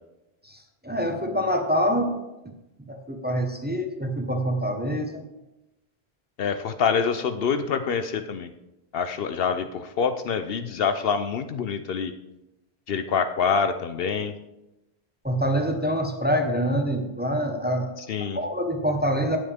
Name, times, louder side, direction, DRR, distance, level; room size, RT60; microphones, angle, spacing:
voice 1, 0.4-2.2 2.8-5.2 15.2-17.9 18.3-19.4, equal, 10° right, 3 dB, 1.0 m, -25 dB
voice 2, 6.4-8.5 8.9-12.1 12.9-14.3 18.0-18.4, left 6 dB, 70° left, 9 dB, 0.8 m, -26 dB
17.5 x 7.2 x 3.5 m, 0.95 s
omnidirectional pair, 1.1 m